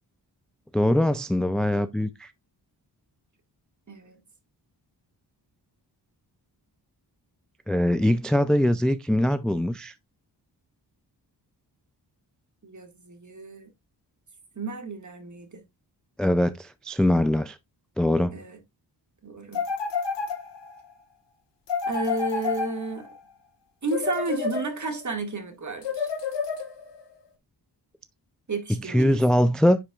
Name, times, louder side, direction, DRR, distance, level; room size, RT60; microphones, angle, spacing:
voice 1, 0.7-2.3 7.7-9.9 16.2-17.6 18.0-18.3 28.9-29.8, left 1 dB, ahead, 0.4 m, -22 dB
voice 2, 12.6-13.7 14.6-15.6 18.3-18.6 19.2-19.6 21.9-23.1 23.8-26.1 28.5-29.2, right 3 dB, 45° right, 2.1 m, -32 dB
sound 1, 19.5-20.8 21.7-23.2 23.9-25.1 25.8-27.0, left 5 dB, 85° left, 1.4 m, -30 dB
10.0 x 5.0 x 2.4 m
wide cardioid pair, 100°, 42 cm